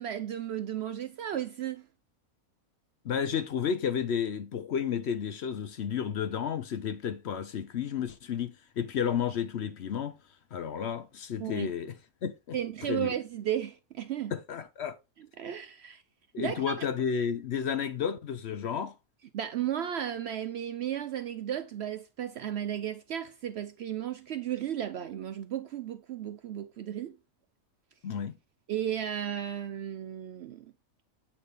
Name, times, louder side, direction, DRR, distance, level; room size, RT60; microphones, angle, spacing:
voice 1, 0.0-1.8 11.4-11.7 12.5-14.3 15.4-16.0 16.4-16.8 19.3-27.2 28.7-30.7, right 10 dB, 65° right, 0.7 m, -34 dB
voice 2, 3.0-10.2 10.5-13.1 14.3-15.0 16.3-18.9 28.0-28.4, left 7 dB, 60° left, 0.8 m, -32 dB
8.7 x 4.0 x 3.2 m
omnidirectional pair, 1.5 m